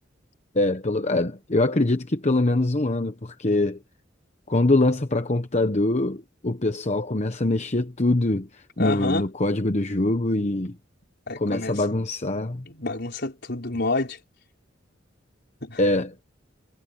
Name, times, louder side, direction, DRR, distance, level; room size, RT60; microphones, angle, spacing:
voice 1, 0.5-3.8 4.5-10.8 11.4-12.6 15.8-16.1, left 2 dB, 35° left, 1.1 m, -23 dB
voice 2, 8.8-9.2 11.3-11.8 12.7-14.2 15.6-15.8, left 2 dB, 60° left, 4.8 m, -28 dB
head